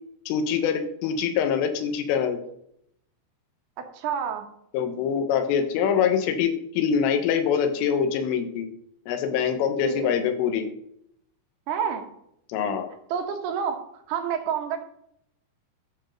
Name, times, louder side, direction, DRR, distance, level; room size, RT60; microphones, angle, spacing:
voice 1, 0.3-2.4 4.7-8.7 9.1-10.7 12.5-12.9, left 7 dB, 80° left, 7 dB, 3.6 m, -24 dB
voice 2, 3.9-4.5 9.8-10.1 11.7-12.0 13.1-13.8 14.1-14.8, right 7 dB, 85° right, 5 dB, 4.0 m, -28 dB
11.0 x 4.6 x 6.4 m, 0.72 s
omnidirectional pair, 5.7 m